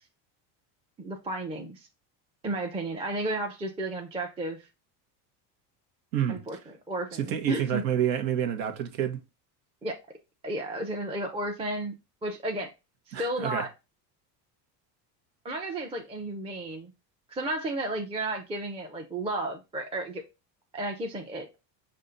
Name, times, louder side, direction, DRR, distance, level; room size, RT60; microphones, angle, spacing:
voice 1, 1.0-1.9 2.4-4.6 6.3-7.8 9.8-10.0 10.4-11.9 12.2-12.7 13.1-13.7 15.4-16.9 17.3-20.2 20.7-21.5, right 2 dB, 10° right, 0.5 m, -33 dB
voice 2, 6.1-6.4 7.1-9.2 13.1-13.6, right 9 dB, 85° right, 1.1 m, -28 dB
5.4 x 2.5 x 3.8 m
supercardioid pair, 110°, 49 cm